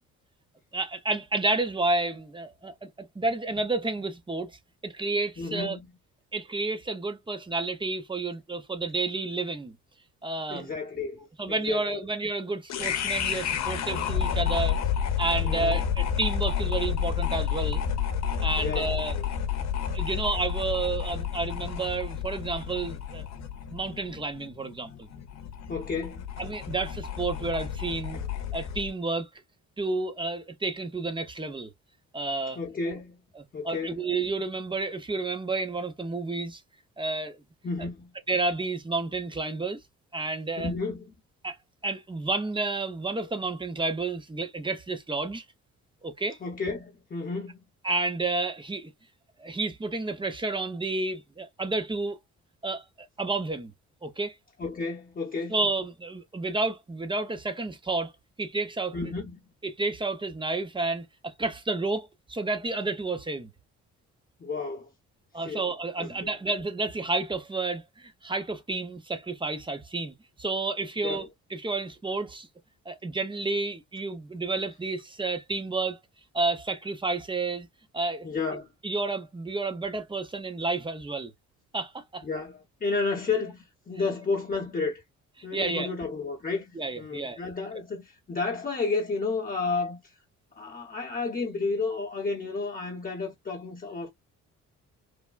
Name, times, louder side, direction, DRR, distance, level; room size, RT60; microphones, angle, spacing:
voice 1, 0.7-4.5 4.8-5.8 6.3-9.8 10.2-10.7 11.4-14.8 15.2-17.8 18.4-19.1 19.9-23.3 23.7-25.1 26.4-28.2 28.5-29.3 29.8-31.7 32.1-32.6 32.9-33.0 33.4-36.6 37.0-37.4 38.3-39.8 40.1-40.7 41.4-41.6 41.8-45.4 46.0-46.4 47.8-48.9 49.4-52.2 52.6-52.8 53.2-53.7 54.0-54.3 55.5-58.1 58.4-58.9 59.6-63.5 65.3-70.1 70.4-71.3 71.5-72.5 72.9-76.0 76.3-77.7 77.9-78.3 78.8-81.3 81.7-82.2 85.5-85.9 86.8-87.4, right 3 dB, 15° right, 0.7 m, -30 dB
voice 2, 5.4-5.9 10.5-11.9 15.4-15.8 18.6-19.3 25.7-26.3 32.5-33.2 33.5-34.0 37.6-38.1 40.6-41.1 46.4-47.6 54.6-55.5 58.9-59.4 64.4-64.9 65.4-65.7 66.0-66.3 71.0-71.3 78.2-78.7 82.2-85.0 85.4-90.0 90.6-94.1, left 4 dB, 30° left, 0.9 m, -32 dB
sound 1, 12.7-28.9, left 8 dB, 60° left, 0.8 m, -30 dB
3.4 x 2.1 x 2.3 m
cardioid pair, 90°, 30 cm